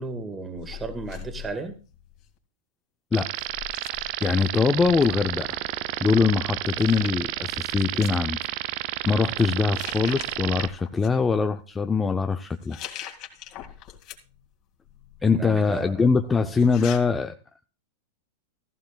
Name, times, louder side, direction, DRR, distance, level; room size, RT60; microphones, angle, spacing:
voice 1, 0.0-1.7 15.2-16.0, right 3 dB, 20° right, 8 dB, 1.7 m, -34 dB
sound 1, 0.6-2.4 3.4-5.4 6.5-6.6 6.8-8.2 9.0-9.3 9.7-11.1 12.5-14.4 14.8-17.0, left 10 dB, 45° left, 2.3 m, -43 dB
sound 2, 3.1-10.7, right 18 dB, 55° right, 0.5 m, -31 dB
voice 2, 4.2-5.6 6.0-8.5 9.0-12.8 15.2-17.3, left 5 dB, 15° left, 7 dB, 0.6 m, -23 dB
15.5 x 14.5 x 2.4 m, 0.34 s
hypercardioid pair, 100°, 0 cm